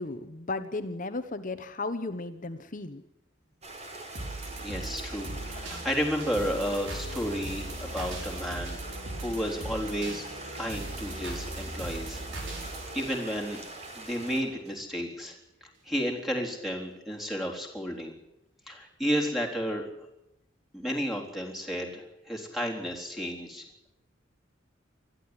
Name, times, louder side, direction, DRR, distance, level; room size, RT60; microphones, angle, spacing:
voice 1, 0.0-3.0, left 3 dB, 45° left, 9 dB, 1.1 m, -35 dB
Stream, 3.6-14.4, right 2 dB, 35° right, 4.2 m, -43 dB
sound 1, 4.1-14.2 14.7-14.8, right 1 dB, 85° right, 5.4 m, -39 dB
voice 2, 4.6-10.3 10.5-12.2 12.5-13.6 13.9-18.1 18.7-19.9 20.7-23.6, equal, ahead, 0 dB, 3.8 m, -32 dB
21.5 x 13.5 x 9.8 m, 0.87 s
head